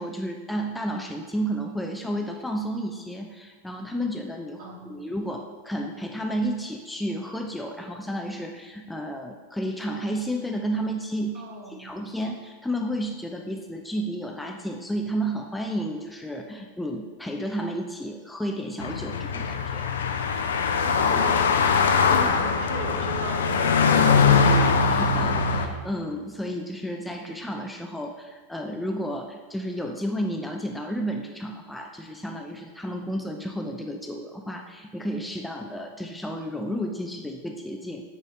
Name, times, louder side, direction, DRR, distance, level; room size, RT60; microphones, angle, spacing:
voice 1, 0.0-19.9 24.9-38.0, equal, 5° left, 2 dB, 0.5 m, -32 dB
voice 2, 4.6-5.0 11.3-11.9 20.8-24.6, right 3 dB, 50° right, 0 dB, 1.5 m, -39 dB
sound 1, 18.8-25.7, left 5 dB, 65° left, 0.6 m, -21 dB
8.7 x 4.0 x 4.8 m, 1.4 s
figure-of-eight pair, 90°, 0 cm